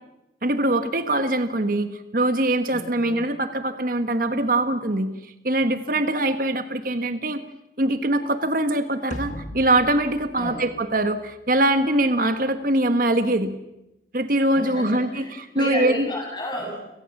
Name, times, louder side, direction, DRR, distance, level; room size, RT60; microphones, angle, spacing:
voice 1, 0.4-7.4 7.8-13.5 14.1-15.2 15.6-16.1, right 1 dB, 50° right, 9 dB, 1.3 m, -23 dB
voice 2, 2.7-3.3 10.4-10.7 14.5-16.8, left 1 dB, 25° left, 0 dB, 7.9 m, -32 dB
sound 1, 9.1-11.6, left 1 dB, 45° left, 1.5 m, -38 dB
29.5 x 18.0 x 7.2 m, 0.94 s
head